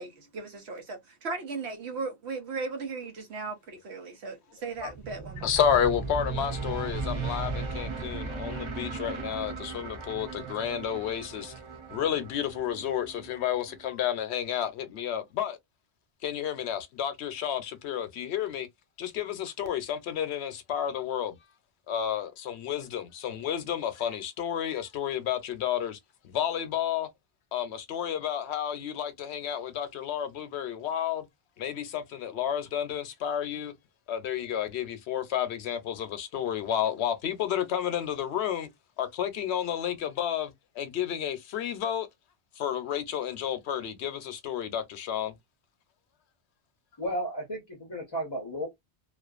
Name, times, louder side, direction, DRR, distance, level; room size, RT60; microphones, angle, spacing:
voice 1, 0.0-5.5, right 4 dB, 75° right, 0.9 m, -37 dB
sound 1, 4.8-13.9, right 4 dB, 50° right, 0.3 m, -37 dB
voice 2, 5.4-11.5 11.9-15.6 16.2-18.7 19.0-21.4 21.9-26.0 26.2-27.1 27.5-31.3 31.6-33.7 34.1-38.7 39.0-42.1 42.6-45.3, left 9 dB, 75° left, 0.8 m, -31 dB
voice 3, 47.0-48.7, equal, 30° left, 0.5 m, -33 dB
2.4 x 2.2 x 2.3 m
omnidirectional pair, 1.1 m